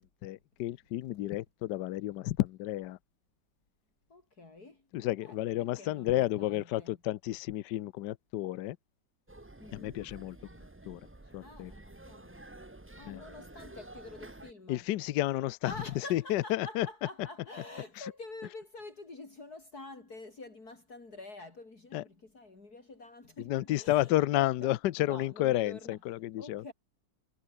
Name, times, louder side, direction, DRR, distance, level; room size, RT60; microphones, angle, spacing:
voice 1, 0.0-3.0 4.9-8.8 9.7-10.4 10.9-11.0 11.3-11.7 13.1-13.2 14.7-15.7 16.1-16.9 21.9-22.0 23.4-26.6, left 15 dB, 70° left, 1.2 m, -31 dB
voice 2, 4.1-4.9 5.2-7.0 9.6-10.0 11.4-12.5 13.0-14.9 15.6-24.7 25.0-26.0 26.4-26.7, left 2 dB, 55° left, 4.8 m, -48 dB
sound 1, 9.3-14.5, right 2 dB, 15° right, 0.4 m, -50 dB
omnidirectional pair, 2.0 m